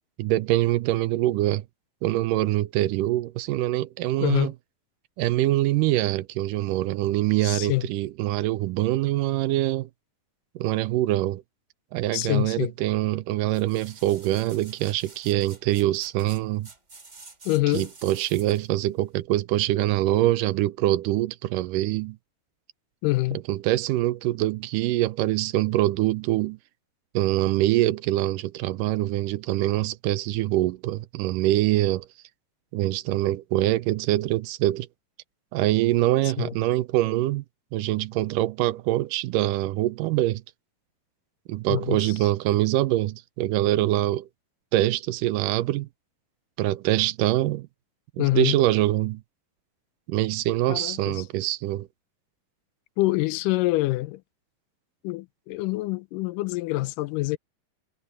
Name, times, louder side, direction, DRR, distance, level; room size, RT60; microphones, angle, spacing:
voice 1, 0.2-1.6 2.0-4.5 5.2-9.9 10.6-11.4 11.9-16.7 17.7-22.2 23.5-26.6 27.1-32.1 32.7-34.9 35.5-37.4 37.7-40.4 41.5-44.3 44.7-45.9 46.6-47.7 48.2-49.2 50.1-51.9, right 15 dB, 80° right, 2.2 m, -24 dB
voice 2, 4.2-4.5 7.4-7.9 12.1-12.7 17.5-17.9 23.0-23.4 36.4-36.5 41.7-42.3 48.2-48.6 50.7-51.3 53.0-54.2 55.0-57.4, left 19 dB, 80° left, 2.1 m, -26 dB
sound 1, 13.5-18.7 19.2-19.3, right 3 dB, 25° right, 2.6 m, -48 dB
omnidirectional pair, 3.9 m